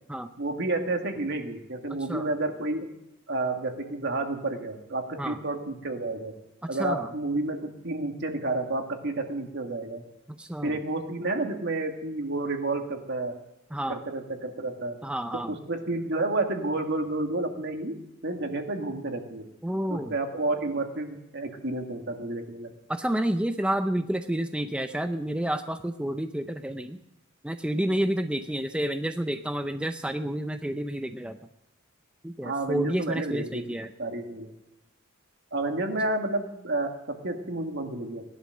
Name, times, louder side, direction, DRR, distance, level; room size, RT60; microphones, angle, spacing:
voice 1, 0.4-2.9 3.3-6.3 6.7-10.0 10.6-13.3 13.9-15.0 15.7-19.5 19.9-22.7 32.4-33.6 34.0-34.5 35.5-38.2, right 2 dB, 60° right, 4 dB, 2.0 m, -30 dB
voice 2, 6.8-7.1 10.3-10.8 13.7-14.0 15.0-15.6 19.6-20.1 22.9-27.0 27.4-31.4 32.2-33.9, right 1 dB, 5° right, 7 dB, 0.6 m, -29 dB
17.5 x 11.5 x 6.6 m, 0.85 s
head